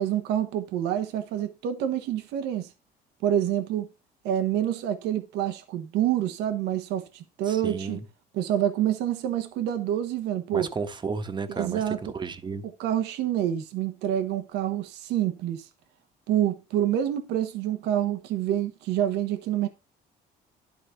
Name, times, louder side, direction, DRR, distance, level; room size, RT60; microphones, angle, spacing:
voice 1, 0.0-2.7 3.2-3.9 4.2-8.0 8.3-10.7 11.5-12.0 12.8-15.7 16.3-19.7, right 11 dB, 90° right, 1.2 m, -27 dB
voice 2, 7.5-8.1 10.5-12.6, right 4 dB, 25° right, 1.3 m, -33 dB
12.0 x 4.1 x 5.7 m
cardioid pair, 110°, 17 cm